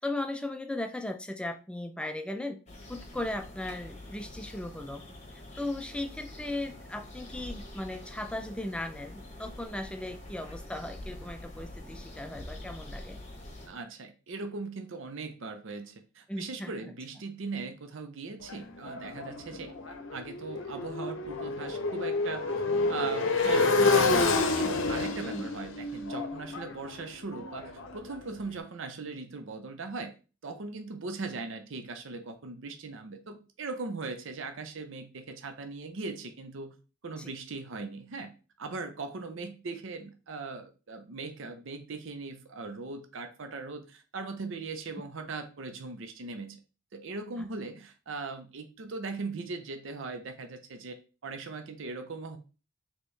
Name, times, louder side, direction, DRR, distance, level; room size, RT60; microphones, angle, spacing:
voice 1, 0.0-2.6 2.9-5.0 5.3-13.2 16.3-16.9 25.2-25.5 37.2-37.3, left 1 dB, 5° left, 7 dB, 0.3 m, -37 dB
sound 1, 2.7-13.7, left 1 dB, 30° left, 0.9 m, -45 dB
voice 2, 13.7-22.5 22.9-30.1 30.4-36.7 37.0-38.3 38.6-46.6 46.9-52.4, right 3 dB, 65° right, 7 dB, 0.6 m, -39 dB
Motorcycle, 18.5-28.3, left 3 dB, 65° left, 0.7 m, -29 dB
4.3 x 2.9 x 3.2 m, 0.33 s
head